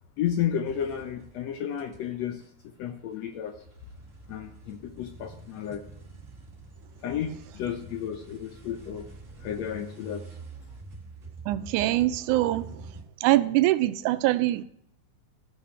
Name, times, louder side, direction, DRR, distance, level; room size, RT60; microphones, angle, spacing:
voice 1, 0.2-3.5 4.3-5.8 7.0-9.0 9.4-10.2, left 9 dB, 70° left, 6 dB, 1.7 m, -32 dB
sound 1, 0.6-2.1 2.4-13.0, right 3 dB, 40° right, 1.1 m, -46 dB
voice 2, 11.5-12.8 13.2-14.6, right 16 dB, 85° right, 14 dB, 2.1 m, -23 dB
14.0 x 5.5 x 4.9 m, 0.70 s
omnidirectional pair, 3.5 m